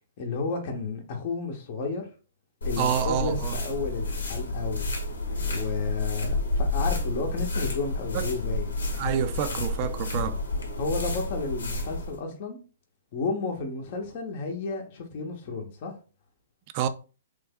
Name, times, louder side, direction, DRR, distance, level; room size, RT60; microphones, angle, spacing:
voice 1, 0.2-2.1 2.6-4.9 5.4-8.7 10.8-12.6 13.1-15.9, left 4 dB, 45° left, 0.8 m, -32 dB
sound 1, 2.6-12.2, left 2 dB, 85° left, 0.9 m, -30 dB
voice 2, 2.8-3.6 8.1-8.3 9.0-10.4 16.7-16.9, right 9 dB, 40° right, 0.4 m, -28 dB
3.1 x 2.2 x 3.5 m
hypercardioid pair, 135°, 0 cm